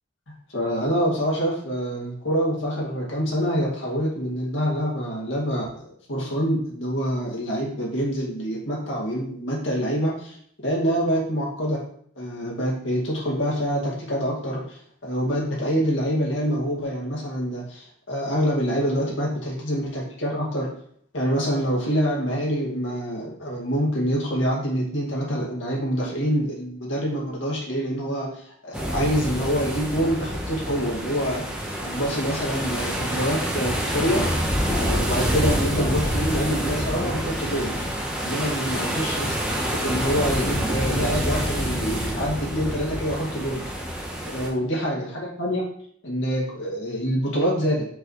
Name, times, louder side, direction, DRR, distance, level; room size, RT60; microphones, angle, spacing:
voice 1, 0.5-10.4 10.6-11.8 12.2-20.7 21.1-34.3 34.6-37.7 38.2-39.4 39.7-43.6 44.3-45.7 46.0-47.9, equal, 80° left, -3 dB, 2.1 m, -26 dB
sound 1, 28.7-44.5, equal, 5° right, 1.0 m, -27 dB
6.3 x 5.2 x 3.1 m, 0.63 s
head